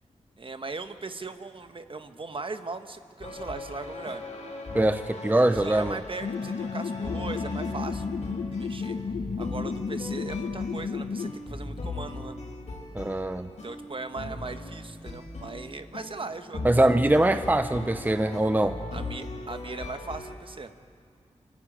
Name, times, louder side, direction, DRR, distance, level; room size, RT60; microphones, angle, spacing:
voice 1, 0.4-4.2 5.5-8.1 8.5-9.0 9.4-12.4 13.6-16.8 18.9-20.7, right 3 dB, 45° right, 9 dB, 1.2 m, -38 dB
sound 1, 3.2-20.3, left 2 dB, 65° left, 4.7 m, -39 dB
voice 2, 4.7-6.0 12.9-13.5 16.6-18.8, right 1 dB, 15° right, 10 dB, 0.7 m, -23 dB
sound 2, 6.2-11.3, left 5 dB, 85° left, 1.0 m, -32 dB
25.0 x 14.0 x 8.8 m, 2.2 s
cardioid pair, 55°, 12 cm